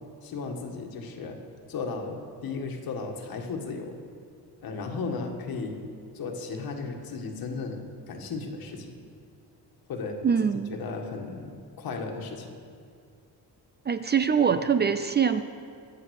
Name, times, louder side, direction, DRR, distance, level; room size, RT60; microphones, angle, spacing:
voice 1, 0.2-1.4 1.7-2.2 2.4-4.0 4.6-5.8 6.1-9.0 9.9-12.6, left 4 dB, 65° left, 3 dB, 1.9 m, -35 dB
voice 2, 10.2-10.8 13.9-15.4, right 7 dB, 30° right, 10 dB, 0.4 m, -23 dB
23.0 x 7.8 x 6.6 m, 2.3 s
cardioid pair, 150°, 38 cm